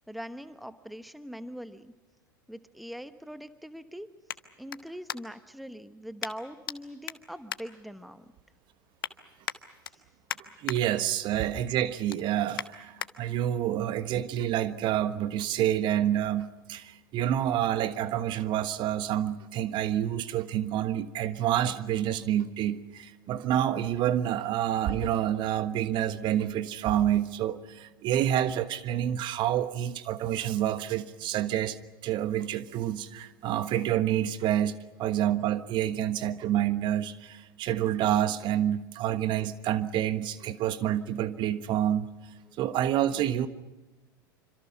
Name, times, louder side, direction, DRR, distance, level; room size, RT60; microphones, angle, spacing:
voice 1, 0.1-1.9 2.5-4.1 4.6-8.3 9.9-10.0, equal, ahead, 1.2 m, -42 dB
sound 1, 1.5-5.6 6.2-6.8 7.0-8.4 8.7-9.1 9.4-10.8 11.2-11.5 11.8-13.1 13.7-13.8, left 10 dB, 70° left, 1.4 m, -39 dB
voice 2, 10.6-42.1 42.6-43.5, right 11 dB, 40° right, 1.4 m, -28 dB
27.0 x 26.0 x 5.9 m
figure-of-eight pair, 80°, 12 cm